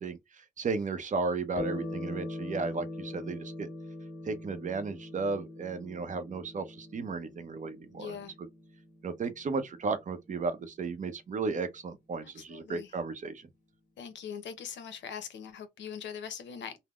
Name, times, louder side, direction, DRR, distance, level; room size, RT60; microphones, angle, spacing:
voice 1, 0.0-3.7 4.2-8.5 9.0-13.5, right 4 dB, 40° right, 0.6 m, -34 dB
sound 1, 1.5-10.4, left 2 dB, 40° left, 1.5 m, -42 dB
voice 2, 8.0-8.3 12.2-12.9 14.0-16.8, left 7 dB, 65° left, 0.7 m, -41 dB
3.6 x 2.0 x 2.3 m
cardioid pair, 90°, 20 cm